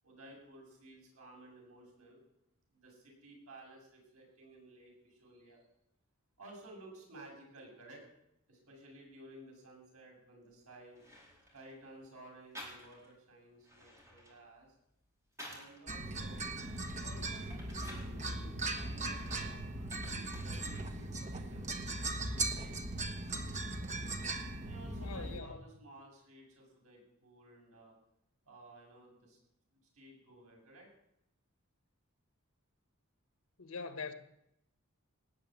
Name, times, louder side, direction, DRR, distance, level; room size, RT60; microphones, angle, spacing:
voice 1, 0.0-2.2 2.7-5.6 6.4-8.0 8.5-11.0 11.5-14.7 15.5-16.5 16.9-19.6 20.0-22.2 22.5-22.7 24.6-27.9 28.4-29.4 29.7-30.9, right 1 dB, 80° right, 7.9 m, -55 dB
sound 1, 10.5-10.6 10.9-11.7 12.5-13.2 13.5-15.8 16.3-18.2 18.7-20.9 21.2-22.0, equal, 15° right, 4.9 m, -53 dB
sound 2, 15.9-25.4, right 2 dB, 35° right, 1.4 m, -39 dB
voice 2, 25.0-25.6 33.6-34.1, left 4 dB, 75° left, 1.5 m, -43 dB
19.0 x 7.1 x 9.1 m
head